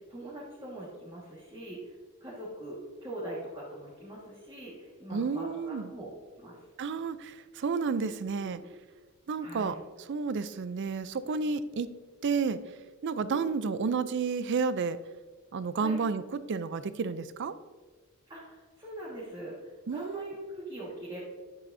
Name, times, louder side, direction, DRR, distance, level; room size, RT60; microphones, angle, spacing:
voice 1, 0.0-1.9 2.2-6.1 6.4-6.6 8.4-8.6 9.4-9.8 13.3-13.5 15.8-16.0 18.3-21.2, right 1 dB, 20° right, -7 dB, 1.7 m, -42 dB
voice 2, 5.1-5.9 6.8-8.6 9.3-11.9 12.2-12.6 13.0-15.0 15.5-17.6 19.9-20.3, right 5 dB, 55° right, 14 dB, 0.4 m, -31 dB
10.5 x 8.7 x 2.7 m, 1.4 s
head